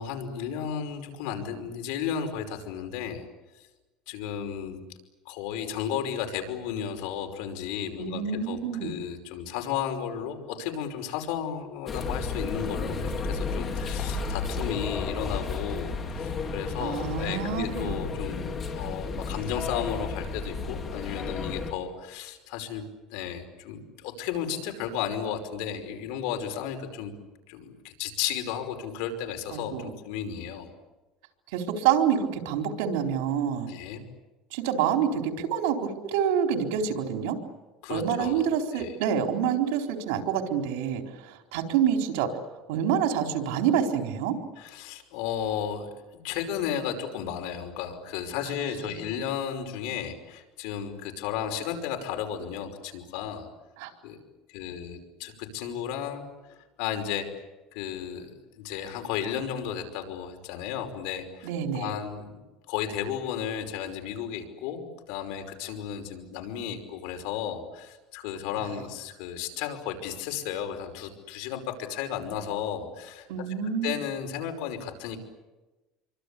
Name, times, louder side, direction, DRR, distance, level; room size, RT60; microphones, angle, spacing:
voice 1, 0.0-3.3 4.1-4.8 5.3-18.4 18.7-22.8 23.1-27.1 27.5-30.7 33.7-34.0 37.8-38.5 38.7-38.9 44.6-53.5 54.0-54.2 54.5-57.3 57.7-62.3 62.7-73.3 73.8-75.2, left 8 dB, 75° left, 5 dB, 5.4 m, -34 dB
voice 2, 8.0-8.9 16.8-17.9 29.5-29.9 31.5-33.7 34.5-37.4 37.9-42.3 42.7-44.4 53.8-53.9 61.4-61.9 73.3-74.0, right 8 dB, 90° right, 4 dB, 4.0 m, -27 dB
sound 1, 11.9-21.7, left 4 dB, 30° left, 3.8 m, -32 dB
27.5 x 24.5 x 8.5 m, 1.1 s
cardioid pair, 150°, 0 cm